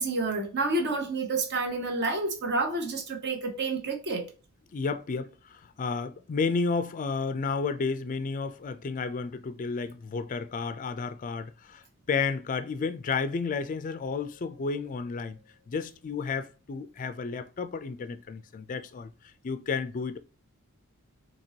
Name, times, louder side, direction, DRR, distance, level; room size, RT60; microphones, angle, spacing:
voice 1, 0.0-4.3, right 3 dB, 50° right, 0.8 m, -29 dB
voice 2, 4.7-15.4 15.7-19.1 19.4-20.2, left 4 dB, 35° left, 0.3 m, -32 dB
4.3 x 2.9 x 2.8 m
head